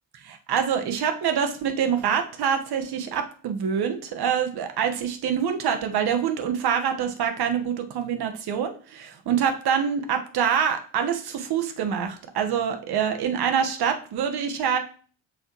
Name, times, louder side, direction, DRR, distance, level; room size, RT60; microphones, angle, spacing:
voice 1, 0.2-14.8, right 7 dB, 50° right, 6 dB, 1.4 m, -25 dB
9.1 x 6.3 x 3.1 m, 0.42 s
hypercardioid pair, 50°, 49 cm